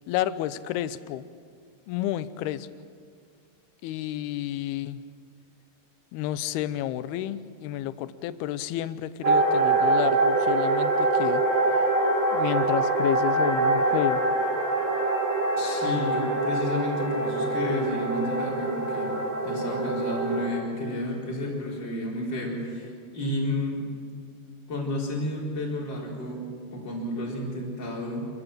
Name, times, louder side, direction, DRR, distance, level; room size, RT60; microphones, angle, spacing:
voice 1, 0.1-1.2 1.9-2.7 3.8-5.0 6.1-11.4 12.3-14.2, left 13 dB, 80° left, 14 dB, 2.5 m, -30 dB
sound 1, 9.2-20.5, right 2 dB, 30° right, 6.0 m, -24 dB
voice 2, 15.6-19.1 19.4-23.8 24.7-26.4 26.7-28.3, left 1 dB, 25° left, -4 dB, 4.6 m, -31 dB
27.0 x 15.0 x 7.5 m, 2.2 s
omnidirectional pair, 4.9 m